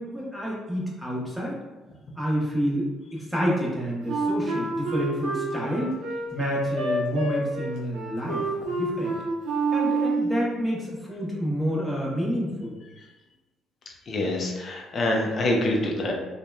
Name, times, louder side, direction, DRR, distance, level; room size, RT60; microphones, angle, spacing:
voice 1, 0.0-1.5 2.2-6.0 6.3-9.1 9.7-12.8, equal, 5° right, -5 dB, 0.9 m, -29 dB
Wind instrument woodwind instrument, 4.1-10.4, right 3 dB, 80° right, 0.6 m, -27 dB
voice 2, 14.1-16.1, left 1 dB, 50° left, 0 dB, 0.6 m, -25 dB
2.8 x 2.2 x 2.2 m, 1.1 s
supercardioid pair, 65°, 0 cm